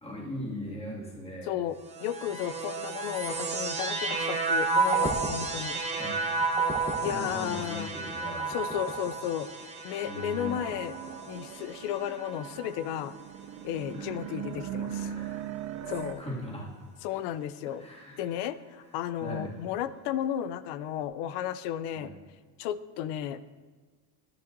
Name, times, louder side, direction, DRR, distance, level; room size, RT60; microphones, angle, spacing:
voice 1, 0.0-1.6 6.0-6.4 7.1-8.5 10.0-10.6 13.9-14.1 15.1-15.4 16.2-16.7 17.8-18.3 19.2-19.5 21.9-22.2, equal, 10° left, -4 dB, 2.1 m, -39 dB
voice 2, 1.4-5.8 7.0-7.9 8.5-9.5 9.8-10.9 11.3-13.2 13.6-15.2 15.9-16.2 17.0-17.9 18.2-22.1 22.6-23.4, left 11 dB, 60° left, 15 dB, 0.6 m, -33 dB
sound 1, 1.8-13.3 14.1-14.8, right 3 dB, 15° right, 0.9 m, -32 dB
sound 2, 10.4-16.1, right 10 dB, 40° right, 0.4 m, -39 dB
10.5 x 10.5 x 2.6 m, 1.5 s
cardioid pair, 135°, 47 cm